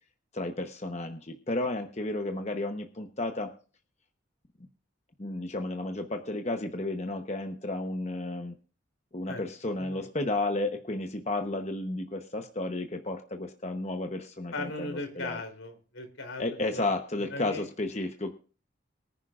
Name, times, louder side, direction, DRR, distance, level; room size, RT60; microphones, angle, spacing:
voice 1, 0.3-3.5 5.2-8.5 9.1-15.4 16.4-18.3, left 2 dB, 35° left, 4 dB, 0.9 m, -32 dB
voice 2, 14.5-16.4 16.7-16.8 17.3-17.6, left 2 dB, 85° left, 5 dB, 3.4 m, -37 dB
23.5 x 10.0 x 2.5 m, 0.38 s
head